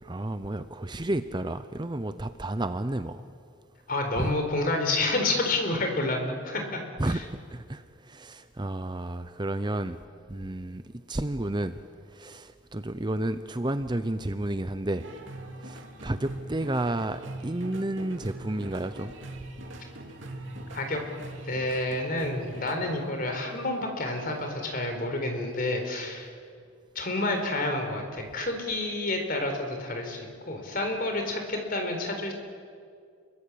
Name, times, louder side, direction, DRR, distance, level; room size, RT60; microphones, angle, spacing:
voice 1, 0.0-3.2 4.2-4.3 7.0-7.2 7.5-10.0 10.3-10.8 11.1-11.8 12.1-15.1 15.6-19.1, right 1 dB, 20° right, 0.7 m, -31 dB
voice 2, 3.9-7.2 20.7-21.0 21.5-26.3 26.9-32.3, left 2 dB, 40° left, 4.4 m, -29 dB
sound 1, 15.0-22.7, right 1 dB, 60° right, 2.9 m, -41 dB
28.5 x 23.0 x 8.6 m
head